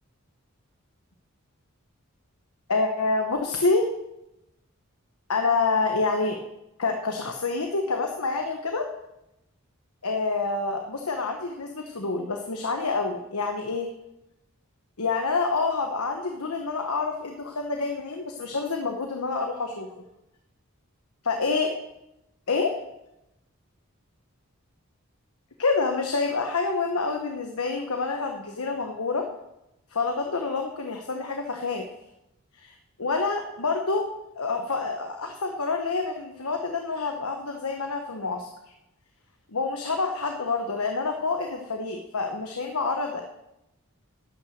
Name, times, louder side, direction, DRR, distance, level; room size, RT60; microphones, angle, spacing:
voice 1, 2.7-3.9 5.3-6.4 6.8-8.8 10.0-13.9 15.0-20.0 21.3-21.7 22.5-22.7 25.6-29.2 29.9-31.9 32.5-32.7 33.0-34.1 34.4-38.5 39.5-43.2, left 3 dB, 90° left, 4 dB, 1.2 m, -27 dB
12.0 x 8.9 x 6.5 m, 0.88 s
head